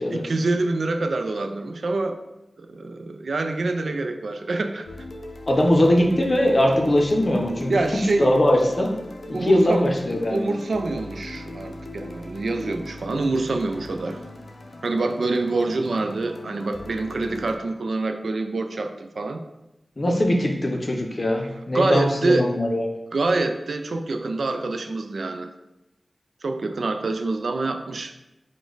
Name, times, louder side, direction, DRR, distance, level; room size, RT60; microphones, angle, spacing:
voice 1, 0.1-2.2 2.6-4.9 7.7-8.3 9.3-9.9 10.3-14.2 14.8-19.4 21.4-22.5 23.1-25.5 26.4-28.1, right 2 dB, 90° right, 6 dB, 0.3 m, -26 dB
sound 1, 4.9-17.6, left 1 dB, 85° left, 0.4 m, -39 dB
voice 2, 5.5-7.7 8.2-8.9 9.3-10.5 20.0-22.9, left 1 dB, 45° left, 1 dB, 0.6 m, -21 dB
4.9 x 2.1 x 3.9 m, 0.95 s
wide cardioid pair, 90°, 0 cm